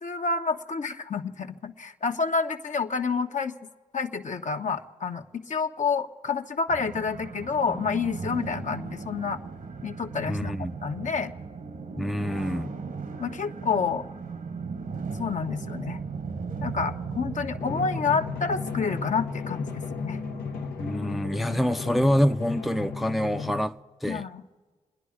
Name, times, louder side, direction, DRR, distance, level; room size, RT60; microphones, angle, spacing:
voice 1, 0.0-3.5 3.9-9.4 9.8-10.5 10.8-11.3 13.2-14.1 15.1-16.0 16.6-20.2 24.1-24.4, left 5 dB, 55° left, 1.1 m, -29 dB
sound 1, 6.7-22.3, right 5 dB, 65° right, 1.5 m, -38 dB
voice 2, 10.3-10.7 12.0-12.7 20.8-23.8 24.0-24.2, equal, ahead, 0.6 m, -26 dB
Drum, 17.6-23.7, left 5 dB, 85° left, 1.2 m, -34 dB
28.0 x 10.5 x 5.0 m
supercardioid pair, 40°, 15 cm